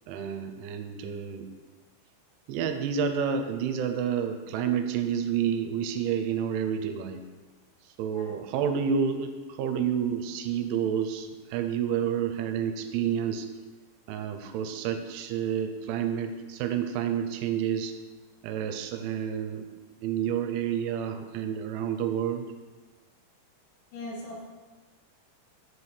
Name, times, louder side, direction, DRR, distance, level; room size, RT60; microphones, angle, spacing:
voice 1, 0.1-1.5 2.5-7.2 8.0-13.5 14.1-17.9 18.4-19.7 20.0-22.5, right 8 dB, 80° right, 7 dB, 2.9 m, -29 dB
voice 2, 8.0-8.4 23.9-24.5, left 1 dB, 70° left, -2 dB, 2.3 m, -40 dB
7.0 x 4.4 x 6.7 m, 1.3 s
omnidirectional pair, 5.5 m